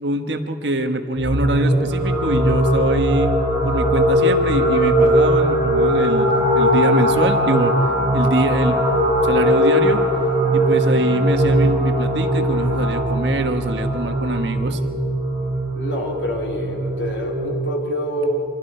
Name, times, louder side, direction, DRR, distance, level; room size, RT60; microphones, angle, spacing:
voice 1, 0.0-3.4 3.6-7.8 8.1-8.8 9.2-10.0 10.5-14.8, right 1 dB, 80° right, 6 dB, 1.4 m, -24 dB
sound 1, 1.2-17.5, equal, 25° right, 6.5 m, -19 dB
voice 2, 15.7-18.5, equal, 85° left, 0 dB, 3.6 m, -26 dB
27.5 x 25.5 x 4.5 m, 2.6 s
head